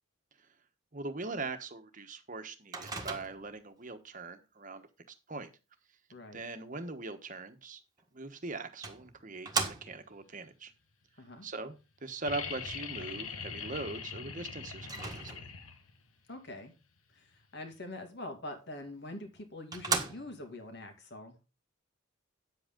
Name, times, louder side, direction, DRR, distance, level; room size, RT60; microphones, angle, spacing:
voice 1, 0.9-4.9 5.3-5.5 6.3-7.8 8.1-10.7 11.4-15.5, right 3 dB, 40° right, 1.2 m, -41 dB
Microwave oven, 2.7-3.6 8.0-8.1 8.8-10.2 14.8-15.7 18.8-18.9 19.4-19.5 19.7-20.6, right 4 dB, 20° right, 1.5 m, -36 dB
voice 2, 6.1-6.4 11.2-11.5 16.3-16.7 17.1-21.4, left 2 dB, 55° left, 2.4 m, -44 dB
sound 1, 12.3-16.0 17.7-17.8, left 6 dB, 90° left, 1.3 m, -42 dB
9.6 x 7.9 x 3.7 m
head